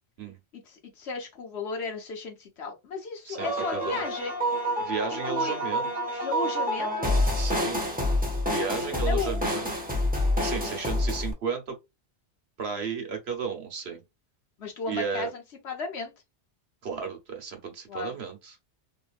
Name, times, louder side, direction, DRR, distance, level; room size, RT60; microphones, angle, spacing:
voice 1, 0.5-4.3 5.1-5.6 6.2-7.2 8.9-9.4 10.5-10.7 14.6-16.1 17.9-18.2, left 4 dB, 70° left, 1.1 m, -35 dB
voice 2, 3.3-4.0 4.8-6.3 7.4-7.9 8.5-9.7 10.4-11.7 12.6-14.0 14.9-15.3 16.8-18.5, right 6 dB, 70° right, 1.1 m, -34 dB
sound 1, 3.4-11.3, left 1 dB, 10° right, 0.5 m, -28 dB
2.8 x 2.5 x 2.4 m
omnidirectional pair, 1.1 m